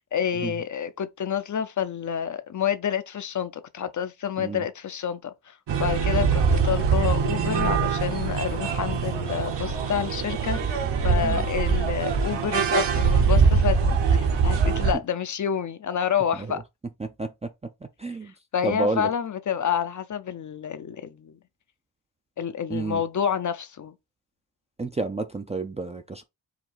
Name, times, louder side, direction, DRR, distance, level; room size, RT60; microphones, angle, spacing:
voice 1, 0.0-16.6 18.5-21.4 22.4-23.9, left 8 dB, 40° left, 0.5 m, -29 dB
sound 1, 5.7-14.9, right 5 dB, 65° right, 1.2 m, -23 dB
voice 2, 17.0-17.5 18.0-18.3 18.6-19.1 22.7-23.0 24.8-26.2, right 3 dB, 15° right, 0.4 m, -30 dB
4.8 x 2.8 x 3.9 m
cardioid pair, 125°, 47 cm